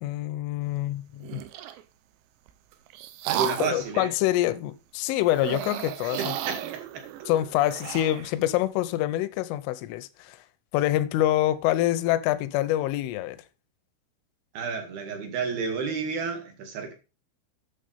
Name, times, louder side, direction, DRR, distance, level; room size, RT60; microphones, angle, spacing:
voice 1, 0.0-1.4 3.6-6.5 7.3-10.4 10.7-13.4, left 14 dB, 80° left, 3.2 m, -26 dB
sound 1, 1.2-1.8 2.5-3.9 5.3-8.3, right 12 dB, 80° right, 2.7 m, -33 dB
voice 2, 3.2-4.1 6.2-7.0 14.5-16.9, right 5 dB, 60° right, 3.2 m, -31 dB
9.0 x 7.2 x 5.3 m
omnidirectional pair, 5.9 m